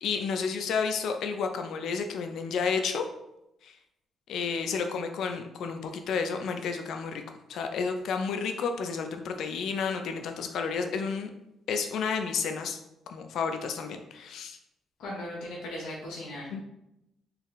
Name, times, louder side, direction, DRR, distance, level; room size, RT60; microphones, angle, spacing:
voice 1, 0.0-3.0 3.6-3.7 4.3-7.2 7.5-11.3 11.7-12.8 13.1-14.6 16.5-16.6, left 5 dB, 75° left, 6 dB, 0.5 m, -31 dB
voice 2, 15.0-16.5, left 1 dB, 90° left, -5 dB, 0.9 m, -38 dB
4.1 x 2.0 x 3.9 m, 0.86 s
cardioid pair, 90°, 0 cm